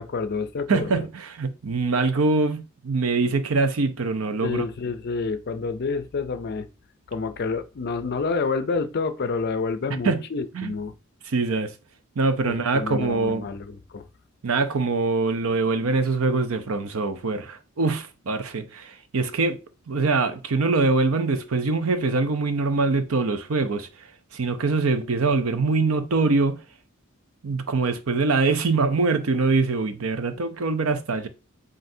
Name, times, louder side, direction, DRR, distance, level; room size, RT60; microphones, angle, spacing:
voice 1, 0.0-1.1 4.4-6.7 7.1-11.0 12.4-14.1, left 4 dB, 50° left, 0.5 m, -28 dB
voice 2, 0.7-4.6 10.0-10.2 10.5-10.8 11.3-11.7 12.2-13.5 14.4-19.6 19.9-24.1 24.3-26.6 27.4-31.3, right 3 dB, 80° right, 0.6 m, -23 dB
7.6 x 2.5 x 2.7 m
head